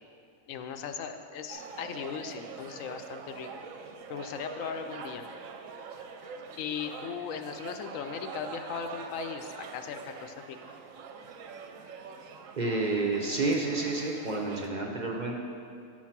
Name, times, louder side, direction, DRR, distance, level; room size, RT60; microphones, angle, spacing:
voice 1, 0.5-3.5 4.1-5.2 6.6-10.7, left 7 dB, 70° left, 7 dB, 0.9 m, -38 dB
sound 1, 1.5-14.7, right 5 dB, 65° right, 0.9 m, -44 dB
voice 2, 12.6-15.5, right 3 dB, 50° right, 0 dB, 0.5 m, -30 dB
10.0 x 4.6 x 5.8 m, 2.5 s
omnidirectional pair, 1.6 m